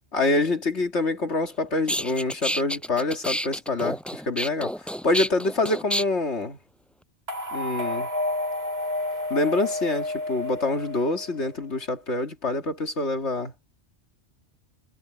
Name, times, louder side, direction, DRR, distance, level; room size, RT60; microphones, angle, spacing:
voice 1, 0.1-6.6 7.5-8.1 9.3-13.5, left 2 dB, 70° left, 2.5 m, -26 dB
sound 1, 1.4-1.5 1.9-6.0, equal, ahead, 6.0 m, -29 dB
sound 2, 7.3-11.5, left 1 dB, 60° right, 4.4 m, -30 dB
omnidirectional pair, 1.2 m